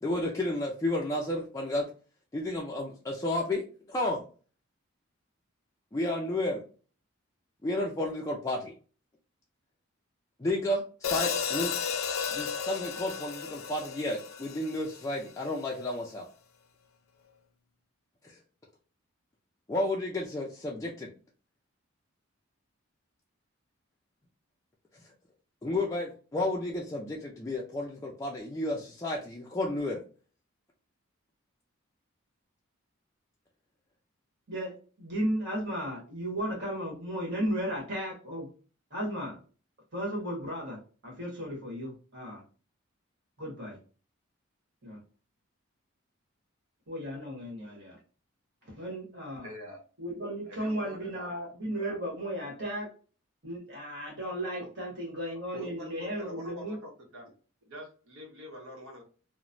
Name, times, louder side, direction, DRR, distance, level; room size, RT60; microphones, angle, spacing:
voice 1, 0.0-1.9 2.3-4.2 5.9-6.6 7.6-8.7 10.4-11.8 12.3-16.2 18.2-18.4 19.7-21.1 25.6-30.0, left 1 dB, 15° left, 0.3 m, -32 dB
Hi-hat, 11.0-15.3, left 6 dB, 85° left, 0.4 m, -33 dB
voice 2, 34.5-38.5 38.9-39.4 39.9-42.4 43.4-43.8 44.8-45.0 46.9-48.0 48.7-49.5 50.0-52.9 53.4-56.8, equal, 55° right, 1.4 m, -35 dB
voice 3, 49.4-49.8 50.4-51.4 54.6-54.7 55.5-57.3 57.6-59.0, left 1 dB, 85° right, 0.8 m, -45 dB
3.0 x 2.1 x 2.5 m
head